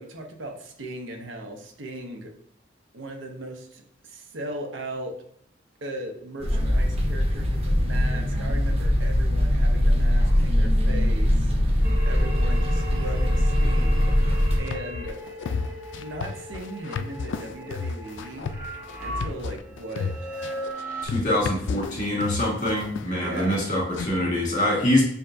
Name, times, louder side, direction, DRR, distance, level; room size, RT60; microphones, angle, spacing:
voice 1, 0.0-2.3 2.9-5.1 5.8-11.5 12.0-14.1 14.5-15.2 15.9-18.5 19.0-20.3 23.1-23.7, right 1 dB, 70° right, 4 dB, 0.7 m, -38 dB
sound 1, 6.4-14.6, equal, 35° right, 0.8 m, -21 dB
sound 2, 11.8-21.1, equal, 10° right, 1.0 m, -37 dB
sound 3, 14.1-24.1, left 5 dB, 65° left, 0.3 m, -33 dB
voice 2, 21.0-25.0, left 1 dB, 40° left, -3 dB, 1.6 m, -24 dB
6.6 x 2.7 x 2.6 m, 0.71 s
head